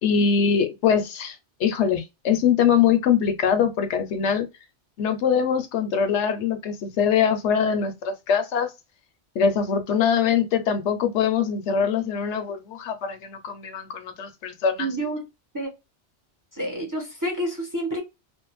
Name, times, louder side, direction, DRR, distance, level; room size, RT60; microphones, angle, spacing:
voice 1, 0.0-4.5 5.0-8.7 9.3-14.9, left 7 dB, 75° left, 0.9 m, -23 dB
voice 2, 14.8-15.2 15.5-15.7 16.5-18.0, right 1 dB, 20° right, 0.6 m, -28 dB
2.6 x 2.1 x 2.9 m
omnidirectional pair, 1.2 m